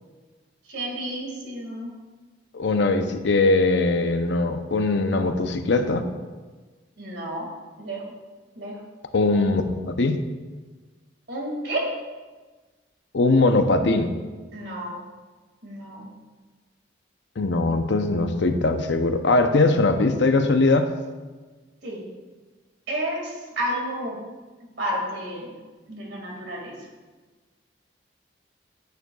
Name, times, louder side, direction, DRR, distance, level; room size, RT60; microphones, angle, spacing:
voice 1, 0.7-1.9 7.0-7.5 7.8-8.0 8.6-8.8 11.3-11.9 14.5-15.0 15.6-16.1 21.8-22.1 22.9-24.2 24.8-25.5 25.9-26.7, right 1 dB, 70° right, -2 dB, 2.2 m, -31 dB
voice 2, 2.5-6.1 9.1-10.2 13.1-14.1 17.4-20.9, left 2 dB, 75° left, 7 dB, 0.6 m, -21 dB
9.3 x 9.1 x 2.3 m, 1.3 s
head